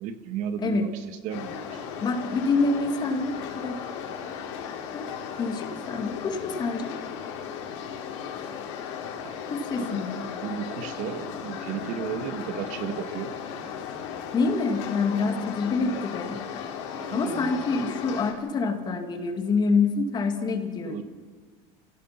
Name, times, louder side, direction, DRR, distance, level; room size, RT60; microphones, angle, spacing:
voice 1, 0.0-1.8 9.2-9.5 9.9-10.0 10.4-13.3 17.0-17.5 20.8-21.0, right 8 dB, 60° right, 9 dB, 1.7 m, -34 dB
sound 1, 1.3-18.3, left 7 dB, 85° left, 3.8 m, -36 dB
voice 2, 2.0-3.8 4.9-5.1 5.4-6.9 9.5-10.1 14.3-16.4 17.1-21.0, left 4 dB, 30° left, 6 dB, 2.1 m, -26 dB
30.0 x 16.5 x 5.9 m, 1.5 s
cardioid pair, 145°, 15 cm